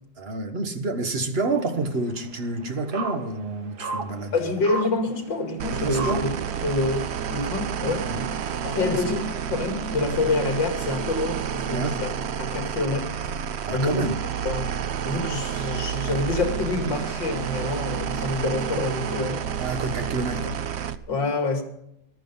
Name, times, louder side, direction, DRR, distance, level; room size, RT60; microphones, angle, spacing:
voice 1, 0.2-4.3 5.7-6.3 8.1-8.3 8.8-9.2 11.7-12.0 13.6-14.1 19.6-20.6, right 2 dB, 35° right, 1.4 m, -29 dB
sound 1, 1.5-6.8, right 4 dB, 60° right, 2.0 m, -35 dB
voice 2, 4.3-6.3 6.6-8.1 8.6-9.2 9.5-12.1 12.4-13.1 13.7-14.1 14.4-14.7 15.1-19.5 20.4-20.5 21.1-21.6, left 3 dB, 80° left, 2.9 m, -27 dB
sound 2, 5.6-21.0, right 8 dB, 85° right, 0.5 m, -30 dB
14.0 x 12.0 x 5.5 m
omnidirectional pair, 2.0 m